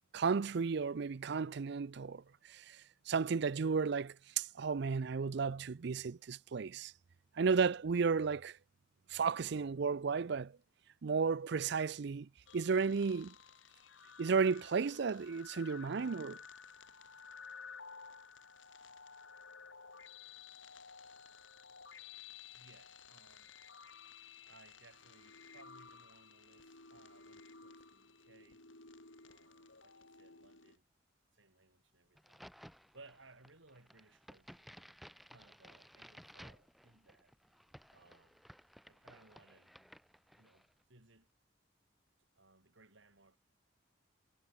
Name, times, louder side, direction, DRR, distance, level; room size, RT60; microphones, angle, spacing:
voice 1, 0.1-6.9 7.4-8.6 9.1-10.5 11.0-13.3 14.2-16.4, right 5 dB, 60° right, 0.5 m, -33 dB
sound 1, 12.5-30.8, left 5 dB, 80° left, 5.5 m, -55 dB
voice 2, 22.5-23.5 24.4-28.6 29.2-30.8 31.3-32.5 32.9-37.3 37.9-38.5 38.9-39.9 40.4-41.3 42.3-43.4, right 3 dB, 75° right, 4.5 m, -63 dB
Crack, 32.2-40.7, equal, ahead, 1.1 m, -58 dB
head